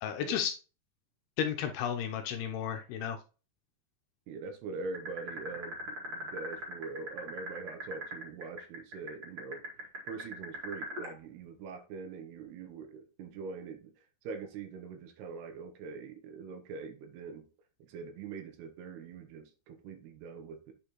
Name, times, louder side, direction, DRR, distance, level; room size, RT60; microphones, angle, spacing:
voice 1, 0.0-0.5 1.4-3.2, left 8 dB, 80° left, 5 dB, 2.5 m, -33 dB
voice 2, 4.3-9.6 10.0-13.9 14.2-17.5 17.8-20.7, right 4 dB, 75° right, 8 dB, 2.9 m, -43 dB
sound 1, 4.9-11.1, right 1 dB, 35° right, 1.9 m, -39 dB
9.0 x 5.1 x 3.0 m, 0.33 s
omnidirectional pair, 4.9 m